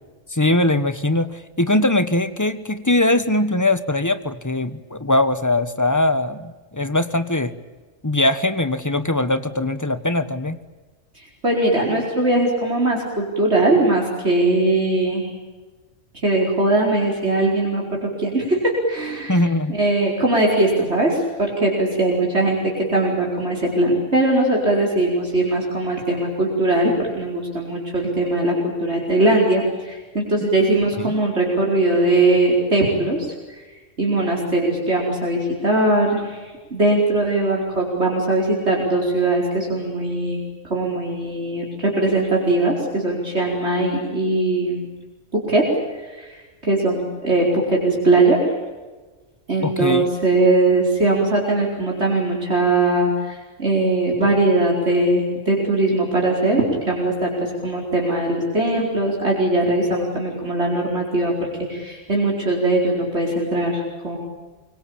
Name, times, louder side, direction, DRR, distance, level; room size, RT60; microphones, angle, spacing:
voice 1, 0.3-7.6 8.0-10.6 19.3-19.8 31.0-31.2 49.6-50.1, left 1 dB, 15° left, 12 dB, 1.2 m, -21 dB
voice 2, 11.2-15.3 16.2-19.4 19.7-33.6 34.0-36.4 36.7-40.4 40.7-44.9 45.3-45.7 46.1-46.4 46.6-48.4 49.5-64.2, right 2 dB, 60° right, -2 dB, 5.2 m, -20 dB
25.5 x 23.5 x 8.8 m, 1.3 s
omnidirectional pair, 1.3 m